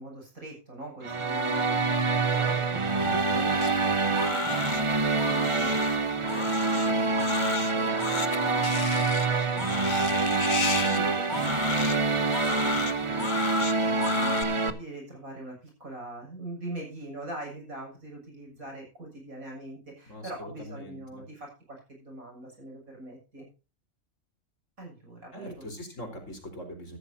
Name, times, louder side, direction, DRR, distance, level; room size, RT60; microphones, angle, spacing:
voice 1, 0.0-7.3 7.6-23.5 24.8-25.6, right 1 dB, 90° right, 0 dB, 7.3 m, -43 dB
sound 1, 1.0-14.7, right 3 dB, 25° right, 0.8 m, -26 dB
Crying sobbing, 3.6-14.4, left 6 dB, 40° left, 0.9 m, -34 dB
voice 2, 20.1-21.2 25.3-27.0, equal, 65° left, 3 dB, 4.4 m, -42 dB
14.5 x 13.5 x 2.7 m, 0.32 s
omnidirectional pair, 1.4 m